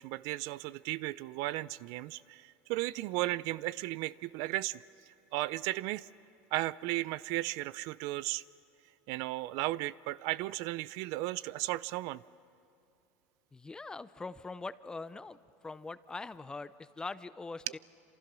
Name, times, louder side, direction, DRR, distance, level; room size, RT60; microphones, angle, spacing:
voice 1, 0.0-4.8 5.3-6.1 6.5-8.4 9.1-12.2 17.7-17.8, right 18 dB, 60° right, 19 dB, 0.5 m, -35 dB
voice 2, 13.5-15.4 15.6-17.8, left 3 dB, 10° left, 15 dB, 0.5 m, -42 dB
28.0 x 27.0 x 6.2 m, 2.7 s
supercardioid pair, 145°, 7 cm